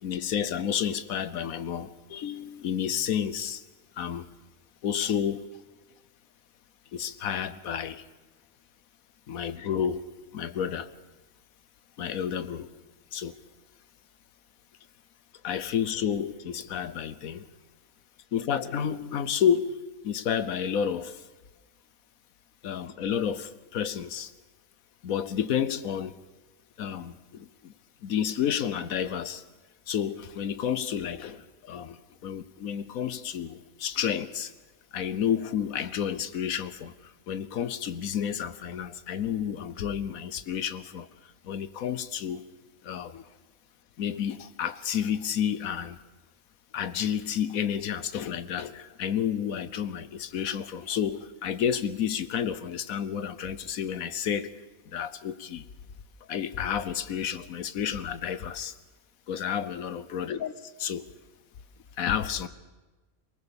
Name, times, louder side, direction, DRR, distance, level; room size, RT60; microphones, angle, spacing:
voice 1, 0.0-3.6 4.0-4.3 4.8-5.5 6.9-8.0 9.3-10.0 10.3-10.9 12.0-12.7 13.1-13.4 15.4-17.5 18.3-19.8 20.0-21.3 22.6-24.3 25.0-26.2 26.8-27.7 28.0-29.4 29.9-34.5 34.9-42.5 42.8-43.3 44.0-46.0 46.7-54.5 54.9-55.7 56.3-58.8 59.3-61.1 62.0-62.5, left 8 dB, 70° left, 14 dB, 1.3 m, -30 dB
23.0 x 19.5 x 7.0 m, 1.2 s
omnidirectional pair, 1.5 m